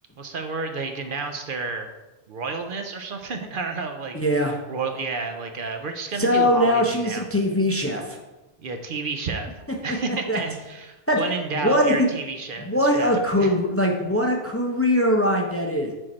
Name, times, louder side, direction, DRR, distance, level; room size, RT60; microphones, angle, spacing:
voice 1, 0.2-1.9 2.3-7.2 8.6-9.5 9.8-12.7 13.0-13.5, right 4 dB, 60° right, 5 dB, 0.8 m, -31 dB
voice 2, 4.1-4.6 6.2-8.2 10.3-10.4 11.1-11.2 11.5-12.1 12.6-15.9, left 1 dB, 15° left, 1 dB, 0.6 m, -21 dB
6.4 x 4.6 x 4.3 m, 1.1 s
omnidirectional pair, 1.1 m